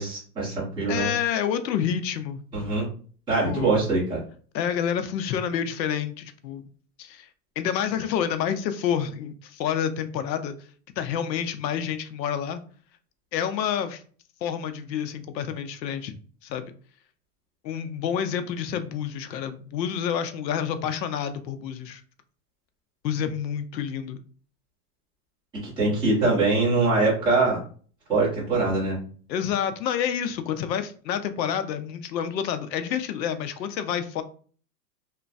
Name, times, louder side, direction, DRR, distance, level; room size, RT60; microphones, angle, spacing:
voice 1, 0.0-1.1 2.5-2.9 3.3-4.2 25.6-27.6 28.1-29.0, right 3 dB, 10° right, 1.0 m, -23 dB
voice 2, 0.9-2.4 3.4-3.8 4.5-6.6 7.0-7.3 7.6-10.6 11.0-12.6 13.3-14.0 14.4-16.1 16.4-16.6 17.6-22.0 23.0-24.2 29.3-34.2, left 8 dB, 85° left, 0.6 m, -28 dB
3.1 x 2.2 x 2.5 m
supercardioid pair, 165°, 49 cm